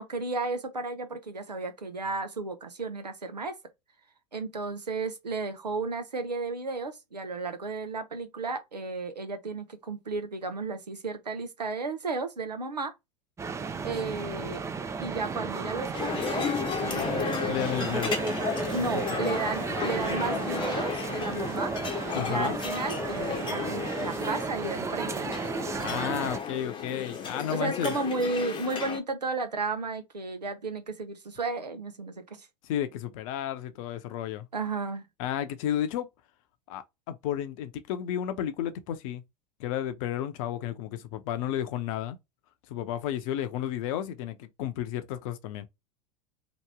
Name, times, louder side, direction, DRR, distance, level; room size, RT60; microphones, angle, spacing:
voice 1, 0.0-3.5 4.3-12.9 13.8-14.6 15.0-16.5 16.8-17.9 18.7-21.7 22.1-25.3 27.5-32.5 34.5-35.0, right 3 dB, 90° right, 0.7 m, -33 dB
sound 1, 13.4-26.4, right 4 dB, 15° right, 0.4 m, -33 dB
sound 2, 15.9-29.0, left 7 dB, 25° left, 0.8 m, -34 dB
voice 2, 17.5-18.1 19.1-19.2 22.1-22.6 25.8-27.9 32.6-34.5 35.2-36.1 36.7-39.2 39.6-42.2 42.7-45.7, left 11 dB, 55° left, 0.7 m, -32 dB
3.0 x 2.6 x 3.4 m
figure-of-eight pair, 85°, 20 cm